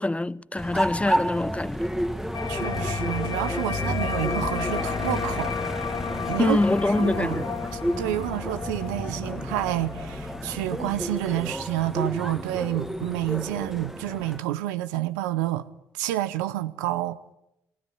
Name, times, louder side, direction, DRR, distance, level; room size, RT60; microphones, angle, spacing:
voice 1, 0.0-1.9 6.4-7.5, left 2 dB, 15° left, 0.8 m, -24 dB
sound 1, 0.6-14.4, equal, 5° right, 1.7 m, -31 dB
sound 2, 2.3-11.4, left 7 dB, 50° left, 1.5 m, -33 dB
voice 2, 2.5-5.5 6.3-6.6 7.0-7.4 8.0-15.7 15.9-17.2, right 14 dB, 80° right, 0.9 m, -29 dB
27.0 x 16.0 x 9.5 m
hypercardioid pair, 45°, 9 cm